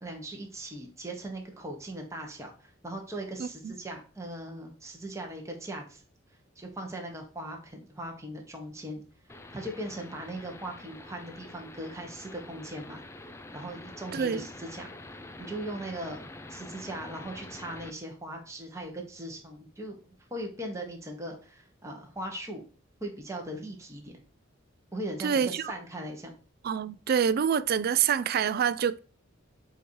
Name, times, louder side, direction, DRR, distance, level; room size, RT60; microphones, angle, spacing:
voice 1, 0.0-6.0 6.6-9.0 9.5-14.9 15.4-20.0 20.3-22.6 23.0-24.1 24.9-26.3, right 1 dB, 15° right, 1.3 m, -39 dB
voice 2, 3.4-3.7 14.1-14.5 25.2-25.7 26.6-29.0, right 7 dB, 50° right, 0.3 m, -26 dB
sound 1, 9.3-17.9, left 2 dB, 15° left, 0.5 m, -46 dB
7.9 x 2.8 x 4.6 m
head